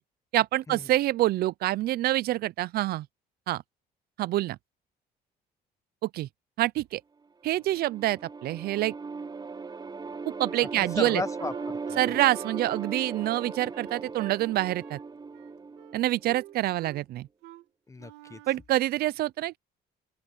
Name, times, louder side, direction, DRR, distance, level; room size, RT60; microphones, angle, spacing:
voice 1, 0.3-3.1 3.5-3.6 4.2-4.6 6.0-6.3 6.6-7.0 7.4-8.9 10.4-11.2 12.0-15.0 15.9-17.3 18.5-19.6, right 15 dB, 65° right, 0.5 m, -26 dB
sound 1, 7.4-16.6, right 4 dB, 25° right, 5.4 m, -38 dB
voice 2, 10.8-12.2 17.9-18.4, left 3 dB, 20° left, 1.1 m, -36 dB
Wind instrument woodwind instrument, 10.9-14.4 14.8-15.1 15.3-16.0 16.3-17.0 17.4-17.6 18.0-18.7, right 16 dB, 90° right, 2.9 m, -47 dB
open air
cardioid pair, 110°, 17 cm